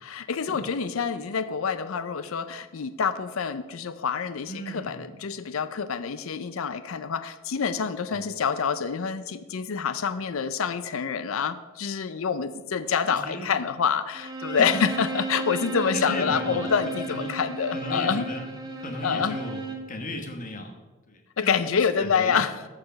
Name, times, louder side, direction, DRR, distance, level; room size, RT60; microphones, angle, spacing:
voice 1, 0.0-18.2 19.0-19.4 21.4-22.5, left 6 dB, 85° left, 12 dB, 0.5 m, -27 dB
voice 2, 4.5-5.0 8.1-8.2 13.1-13.5 14.6-14.7 15.9-16.7 17.1-17.3 17.7-18.5 18.8-19.6 19.9-20.7 21.1-22.5, left 1 dB, 40° left, 5 dB, 1.3 m, -35 dB
Bowed string instrument, 14.1-19.9, right 3 dB, 20° right, 1.2 m, -34 dB
14.0 x 4.9 x 5.7 m, 1.2 s
head